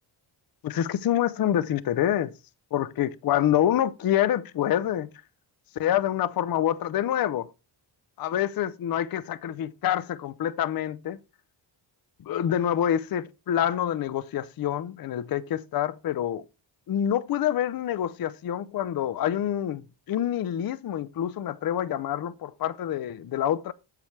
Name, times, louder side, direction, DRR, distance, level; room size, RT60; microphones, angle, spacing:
voice 1, 0.6-2.3 2.7-5.1 5.8-7.5 8.2-11.2 12.3-16.5 16.9-19.8 20.1-23.7, left 11 dB, 50° left, 0.5 m, -26 dB
8.3 x 6.8 x 3.2 m
cardioid pair, 105°, 47 cm